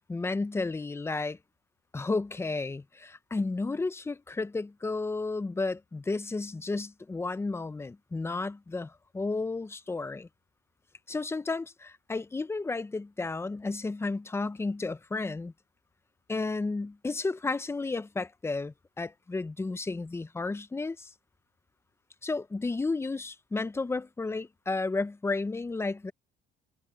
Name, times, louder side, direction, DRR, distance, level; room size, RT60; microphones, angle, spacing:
voice 1, 0.0-1.4 1.9-10.3 11.1-15.5 16.3-21.1 22.2-26.1, left 3 dB, 15° left, 0.8 m, -32 dB
cardioid pair, 110°, 17 cm